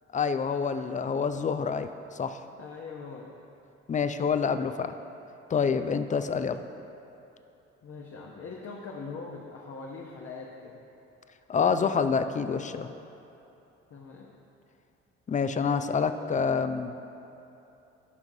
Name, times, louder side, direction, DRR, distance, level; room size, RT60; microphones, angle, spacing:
voice 1, 0.1-2.4 3.9-4.9 5.5-6.6 11.5-12.9 15.3-16.9, left 6 dB, 25° left, 10 dB, 0.4 m, -27 dB
voice 2, 2.6-3.4 7.8-10.8 13.9-14.3 16.2-16.3, left 4 dB, 45° left, -1 dB, 0.9 m, -42 dB
13.5 x 5.8 x 2.7 m, 2.9 s
hypercardioid pair, 50°, 33 cm